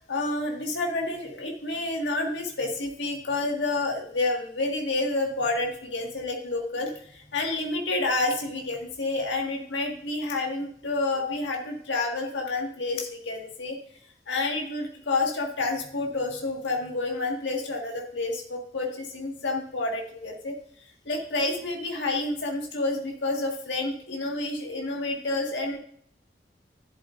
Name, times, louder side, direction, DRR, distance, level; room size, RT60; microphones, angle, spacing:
voice 1, 0.1-13.8 14.3-20.5 21.0-25.8, left 2 dB, 80° left, 1 dB, 1.7 m, -29 dB
11.0 x 7.6 x 2.5 m, 0.62 s
head